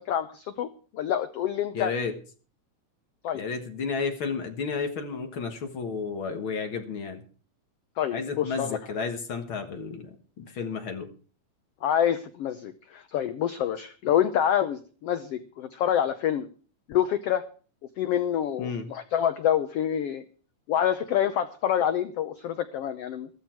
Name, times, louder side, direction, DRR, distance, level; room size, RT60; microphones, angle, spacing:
voice 1, 0.0-1.9 3.2-3.4 8.0-8.8 11.8-16.5 16.9-17.4 18.0-20.2 20.7-23.3, left 10 dB, 80° left, 11 dB, 1.3 m, -27 dB
voice 2, 1.7-2.1 3.3-7.2 8.1-11.1 18.6-18.9, left 5 dB, 50° left, 6 dB, 1.8 m, -32 dB
14.0 x 13.5 x 4.6 m, 0.40 s
omnidirectional pair, 3.8 m